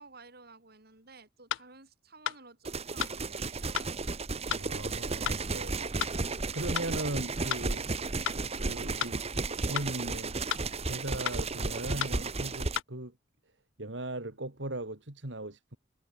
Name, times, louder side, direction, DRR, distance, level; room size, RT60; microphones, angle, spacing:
voice 1, 0.0-3.9 7.4-7.7, right 3 dB, 55° right, 6.2 m, -54 dB
sound 1, 1.5-1.7 2.3-2.4 3.0-3.2 3.8-3.9 4.5-4.7 5.3-5.4 6.0-6.2 6.8-6.9 7.5-7.7 8.3-8.4 9.0-9.2 9.8-9.9 10.5-10.7 11.3-11.4 12.0-12.2 12.8-12.9, left 11 dB, 90° left, 0.3 m, -33 dB
sound 2, 2.6-12.8, right 3 dB, 35° right, 1.3 m, -34 dB
voice 2, 4.6-6.1 6.5-7.8 8.3-10.3 10.8-13.1 13.8-15.8, right 1 dB, 75° right, 3.1 m, -38 dB
head